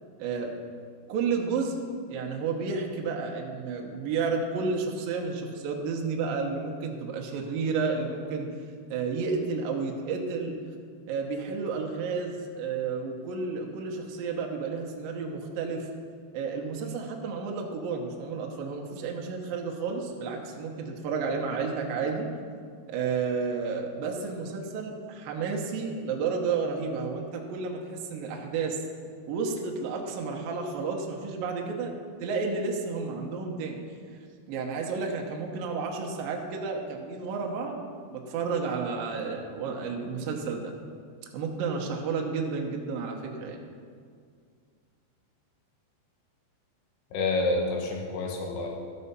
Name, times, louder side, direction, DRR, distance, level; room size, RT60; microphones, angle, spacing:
voice 1, 0.2-0.5 1.1-1.8 2.1-8.5 8.9-10.5 11.1-15.9 16.3-22.3 22.9-28.8 29.3-31.9 32.2-33.8 34.5-40.7 41.3-43.6, right 4 dB, 70° right, 1 dB, 2.3 m, -31 dB
voice 2, 47.1-48.7, left 2 dB, 85° left, -1 dB, 3.5 m, -28 dB
12.5 x 5.5 x 6.8 m, 2.1 s
omnidirectional pair, 5.2 m